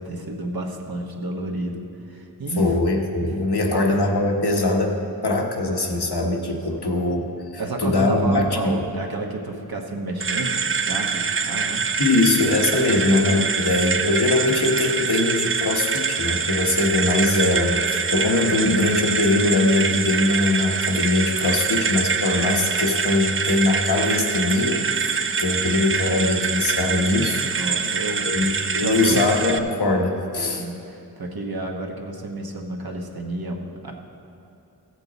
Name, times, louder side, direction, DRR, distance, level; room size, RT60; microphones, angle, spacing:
voice 1, 0.0-1.8 2.1-2.8 3.2-3.3 3.7-3.8 6.8-6.9 7.6-11.8 12.9-13.0 27.5-28.3 28.8-29.3 30.5-33.9, right 2 dB, 65° right, 1 dB, 1.2 m, -31 dB
voice 2, 2.6-5.0 5.2-7.3 7.8-8.8 12.0-27.5 28.2-30.6, left 2 dB, 75° left, 1 dB, 1.2 m, -21 dB
sound 1, 10.2-29.6, right 5 dB, 35° right, 0.4 m, -25 dB
15.0 x 8.0 x 4.0 m, 2.8 s
wide cardioid pair, 75°, 40 cm